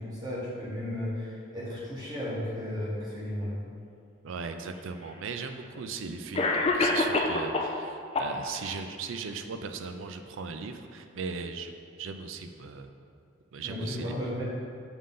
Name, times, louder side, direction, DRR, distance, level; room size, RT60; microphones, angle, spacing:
voice 1, 0.0-3.6 13.6-14.4, left 1 dB, 20° right, -8 dB, 1.0 m, -34 dB
voice 2, 4.2-11.7 12.0-12.9 13.5-14.1, right 5 dB, 70° right, 7 dB, 0.4 m, -38 dB
Cough, 4.7-4.8 5.8-5.9 6.4-7.8 8.1-8.8, left 2 dB, 30° left, 0.4 m, -26 dB
7.0 x 3.8 x 3.7 m, 2.3 s
head